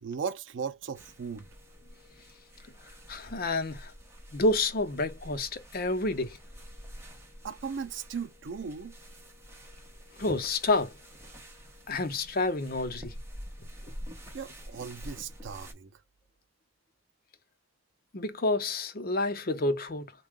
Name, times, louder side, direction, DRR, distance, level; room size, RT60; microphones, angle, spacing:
voice 1, 0.0-1.5 7.4-8.9 14.3-16.0, right 6 dB, 80° right, 0.4 m, -37 dB
sound 1, 0.9-15.7, equal, 15° right, 1.1 m, -47 dB
voice 2, 3.1-3.9 4.3-6.4 10.2-10.9 11.9-13.1 18.1-20.1, left 2 dB, 50° left, 0.7 m, -29 dB
3.6 x 2.2 x 3.5 m
head